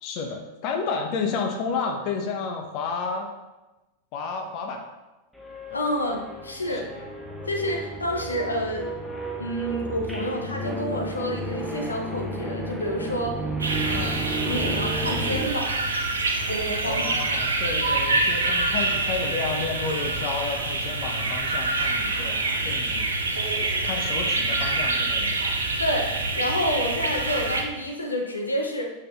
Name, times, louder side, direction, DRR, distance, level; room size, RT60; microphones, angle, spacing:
voice 1, 0.0-3.3 4.1-4.8 6.7-7.0 16.8-23.1 23.6-25.4, left 4 dB, 40° left, 3 dB, 1.1 m, -31 dB
sound 1, 5.3-15.5, right 1 dB, ahead, 1.2 m, -32 dB
voice 2, 5.7-6.9 7.5-8.9 9.4-13.4 13.8-14.1 14.4-15.8 16.5-17.3 25.8-28.8, equal, 80° left, 2 dB, 1.1 m, -29 dB
sound 2, 13.6-27.6, right 2 dB, 75° right, 1.1 m, -26 dB
8.9 x 6.0 x 3.6 m, 1.1 s
figure-of-eight pair, 90°, 0 cm